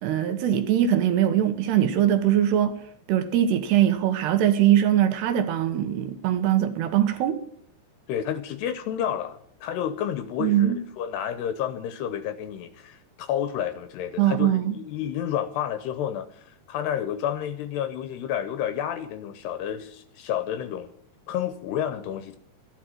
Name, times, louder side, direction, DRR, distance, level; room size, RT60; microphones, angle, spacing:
voice 1, 0.0-2.8 3.1-7.4 10.4-10.8 14.2-14.7, right 11 dB, 70° right, 2.9 m, -22 dB
voice 2, 8.1-20.9 21.3-22.4, left 10 dB, 80° left, 2.6 m, -30 dB
14.0 x 11.0 x 7.6 m
omnidirectional pair, 5.3 m